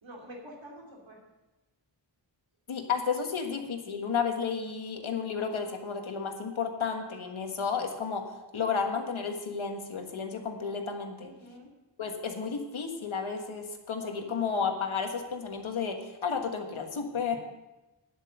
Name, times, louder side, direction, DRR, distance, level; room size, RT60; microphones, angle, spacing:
voice 1, 0.0-1.2 11.2-11.7, equal, 70° right, -1 dB, 2.9 m, -47 dB
voice 2, 2.7-11.3 12.0-17.4, left 6 dB, 80° left, 4 dB, 1.6 m, -32 dB
10.5 x 7.9 x 6.6 m, 1.0 s
wide cardioid pair, 80°, 47 cm